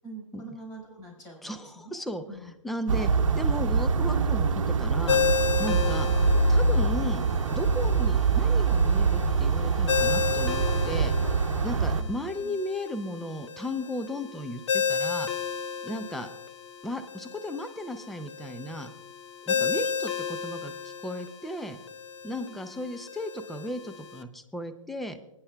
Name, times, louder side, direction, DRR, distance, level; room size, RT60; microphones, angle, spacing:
voice 1, 0.0-2.0 2.3-2.5 11.7-12.1 12.4-12.6 15.9-16.1 19.5-19.7 22.4-22.6, right 2 dB, 20° left, -2 dB, 4.6 m, -44 dB
voice 2, 1.4-3.1 3.4-5.2 5.6-6.1 6.5-7.2 7.5-11.1 11.6-15.3 15.8-16.3 16.8-18.9 19.4-20.7 21.0-21.8 22.2-25.2, left 1 dB, ahead, 9 dB, 0.4 m, -35 dB
sound 1, 2.9-12.0, right 4 dB, 70° right, 0.8 m, -24 dB
Ringtone, 5.1-24.2, left 6 dB, 60° left, 0.8 m, -33 dB
27.0 x 9.9 x 2.3 m, 0.88 s
hypercardioid pair, 140°, 17 cm